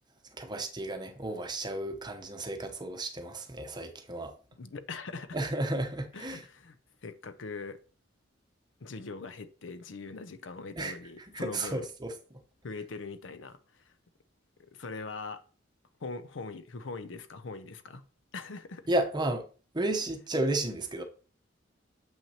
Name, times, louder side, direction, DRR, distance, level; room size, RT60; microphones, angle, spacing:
voice 1, 0.3-4.3 5.3-6.4 10.8-12.1 18.9-19.4 19.7-21.0, right 1 dB, 20° right, 0.8 m, -33 dB
voice 2, 4.5-5.4 6.1-6.7 7.0-7.8 8.8-11.9 12.6-13.9 14.7-15.4 16.0-18.0 18.3-18.9, left 4 dB, 70° left, 0.6 m, -41 dB
7.3 x 5.9 x 2.8 m
head